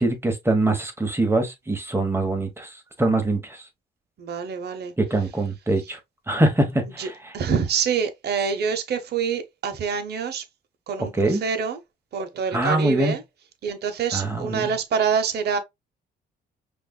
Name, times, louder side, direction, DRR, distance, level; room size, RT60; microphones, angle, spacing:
voice 1, 0.0-2.7 3.0-3.4 5.0-6.0 6.3-7.1 11.2-11.4 12.5-13.1 14.1-14.7, right 2 dB, 10° right, 1.1 m, -23 dB
voice 2, 4.2-4.9 7.0-7.1 7.3-10.4 10.9-11.8 12.1-13.2 13.6-15.6, right 6 dB, 55° right, 0.8 m, -26 dB
5.2 x 2.4 x 2.2 m
cardioid pair, 90°, 20 cm